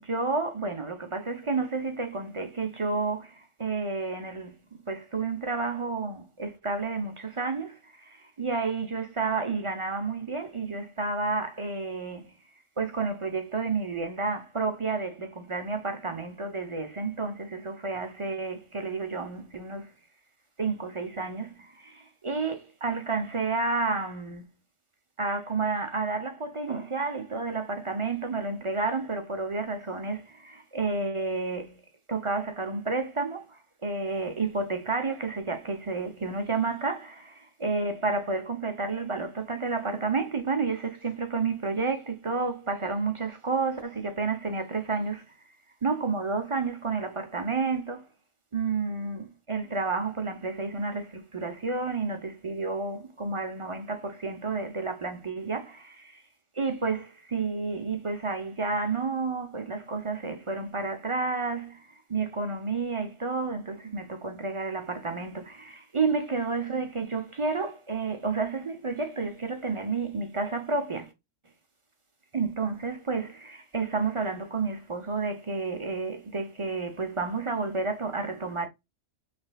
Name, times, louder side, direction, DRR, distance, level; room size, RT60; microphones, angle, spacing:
voice 1, 0.0-12.3 12.8-19.9 20.6-24.5 25.2-31.8 32.1-45.2 45.8-48.1 48.5-56.2 56.6-71.1 72.3-78.7, right 4 dB, 30° right, 0.6 m, -31 dB
6.0 x 3.3 x 2.3 m
omnidirectional pair, 1.3 m